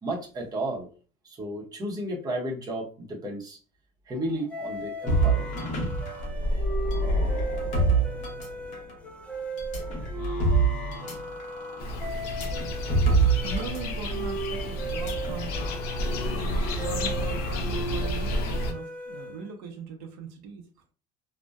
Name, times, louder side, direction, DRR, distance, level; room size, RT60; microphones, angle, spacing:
voice 1, 0.0-0.9 1.2-3.6 4.1-5.5 6.9-7.1 16.3-16.9, right 1 dB, 20° right, -2 dB, 0.8 m, -33 dB
sound 1, 4.5-19.6, right 2 dB, 5° left, 0.3 m, -37 dB
sound 2, 5.1-8.9 9.6-13.8 14.1-14.2 14.9-15.7, right 3 dB, 40° left, 0.9 m, -26 dB
sound 3, 11.8-18.7, left 1 dB, 60° left, 0.6 m, -31 dB
voice 2, 13.4-15.8 16.8-20.6, right 4 dB, 65° right, 2 dB, 0.6 m, -39 dB
2.6 x 2.1 x 2.3 m, 0.37 s
supercardioid pair, 130°, 19 cm